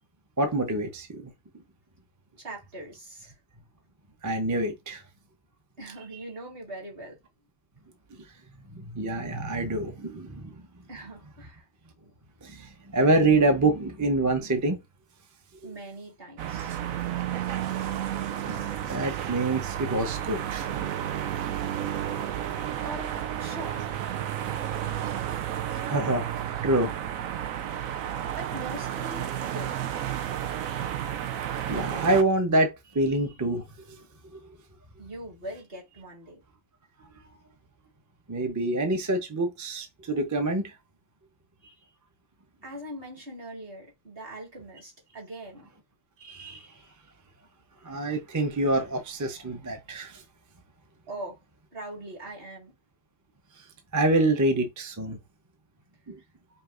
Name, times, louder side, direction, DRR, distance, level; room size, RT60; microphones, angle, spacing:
voice 1, 0.4-1.2 4.2-5.0 8.7-10.5 12.4-14.8 17.8-17.9 18.5-18.6 18.9-20.9 25.0-25.4 25.7-26.9 31.7-34.0 34.3-34.4 38.3-40.7 46.2-46.7 47.8-50.2 53.9-55.2 56.1-56.2, right 2 dB, 20° right, 0.5 m, -26 dB
voice 2, 2.4-3.3 5.8-7.2 10.9-11.7 15.6-16.7 22.8-23.8 28.2-29.7 35.0-36.4 42.6-45.7 51.1-51.4 51.7-52.7, right 1 dB, 45° right, 2.0 m, -41 dB
sound 1, 16.4-32.2, right 10 dB, 80° right, 1.0 m, -32 dB
5.4 x 2.7 x 2.4 m
omnidirectional pair, 1.4 m